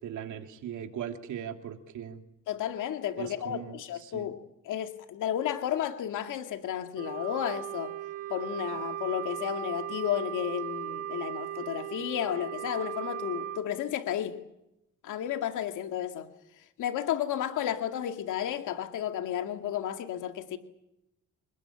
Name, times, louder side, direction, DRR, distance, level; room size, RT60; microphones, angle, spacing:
voice 1, 0.0-2.2 3.2-4.3, right 9 dB, 75° right, 5 dB, 2.9 m, -39 dB
voice 2, 2.5-4.4 4.7-7.9 8.3-14.4 15.0-16.3 16.8-20.6, left 10 dB, 80° left, 6 dB, 2.1 m, -32 dB
Wind instrument woodwind instrument, 6.9-13.6, right 12 dB, 50° right, 3.8 m, -37 dB
27.5 x 20.0 x 8.8 m, 0.87 s
cardioid pair, 90°, 30 cm